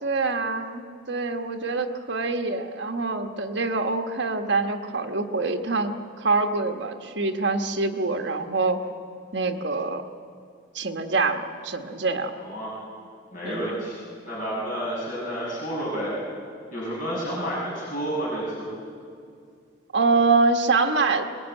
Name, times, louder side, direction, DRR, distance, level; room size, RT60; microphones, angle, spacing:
voice 1, 0.0-8.8 9.3-10.0 10.7-12.3 13.4-13.7 19.9-21.2, right 3 dB, 60° right, 5 dB, 1.4 m, -25 dB
voice 2, 12.4-12.7 13.3-16.1 16.7-18.7, right 1 dB, 40° left, -6 dB, 6.8 m, -30 dB
22.5 x 20.5 x 9.2 m, 2.3 s
head